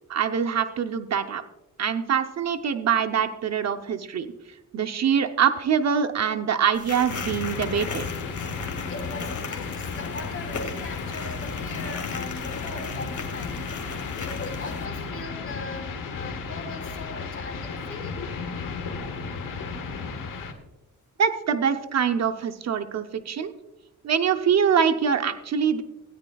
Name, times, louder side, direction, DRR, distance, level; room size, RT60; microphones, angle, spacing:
voice 1, 0.1-1.4 1.8-4.3 4.7-8.0 21.2-23.5 24.0-25.8, right 7 dB, 55° right, 6 dB, 0.7 m, -24 dB
sound 1, 6.7-14.9, left 4 dB, 65° left, 2.2 m, -38 dB
sound 2, 7.1-20.5, left 5 dB, 85° left, 1.4 m, -34 dB
voice 2, 8.9-15.9 16.2-18.2, left 2 dB, 45° left, 2 dB, 3.0 m, -39 dB
17.0 x 9.9 x 2.3 m, 0.96 s
cardioid pair, 105°, 32 cm